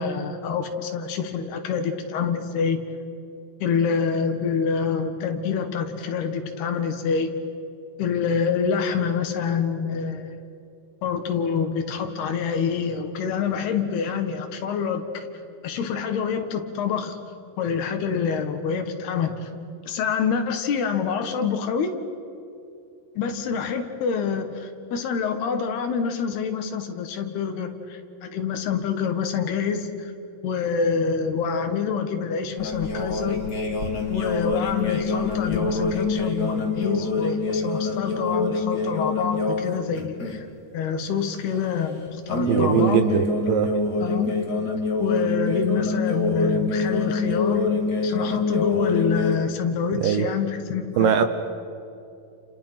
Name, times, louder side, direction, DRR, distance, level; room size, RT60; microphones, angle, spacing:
voice 1, 0.0-2.8 3.6-7.3 8.0-10.4 11.0-15.3 15.6-17.2 17.6-19.5 19.9-22.0 23.2-30.1 30.4-33.4 34.1-40.5 40.7-43.0 44.0-44.3 45.0-47.7 48.0-51.3, left 6 dB, 75° left, 7 dB, 3.6 m, -26 dB
sound 1, 32.6-39.7 40.0-40.4 42.3-49.4, left 3 dB, 30° left, 2.2 m, -25 dB
voice 2, 42.5-43.7 50.0-50.3 51.0-51.2, right 8 dB, 70° right, 9 dB, 2.3 m, -21 dB
30.0 x 29.5 x 5.9 m, 2.6 s
omnidirectional pair, 4.8 m